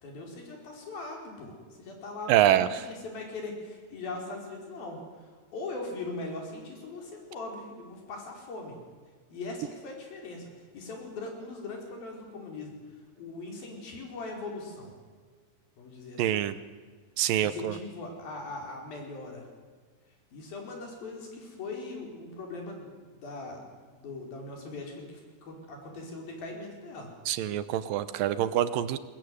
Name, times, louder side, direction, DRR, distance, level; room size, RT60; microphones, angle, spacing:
voice 1, 0.0-5.0 5.5-8.8 9.3-10.5 10.7-12.7 13.2-14.9 15.8-16.4 17.4-19.5 20.3-23.6 23.9-27.1, left 2 dB, 85° left, 1 dB, 6.6 m, -40 dB
voice 2, 2.3-2.8 16.2-16.6 17.2-17.8 27.3-29.0, right 12 dB, 80° right, 14 dB, 2.6 m, -25 dB
22.0 x 21.0 x 9.6 m, 1.5 s
omnidirectional pair, 4.1 m